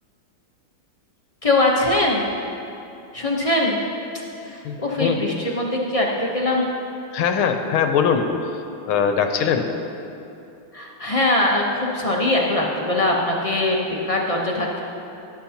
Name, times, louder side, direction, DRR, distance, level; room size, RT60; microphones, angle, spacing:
voice 1, 1.4-2.3 3.1-3.8 4.4-6.6 10.7-14.8, left 2 dB, 35° left, -3 dB, 0.5 m, -22 dB
voice 2, 4.6-5.2 7.1-8.6 8.9-9.7, left 7 dB, 80° left, 6 dB, 1.6 m, -21 dB
18.0 x 10.0 x 2.9 m, 2.7 s
omnidirectional pair, 2.3 m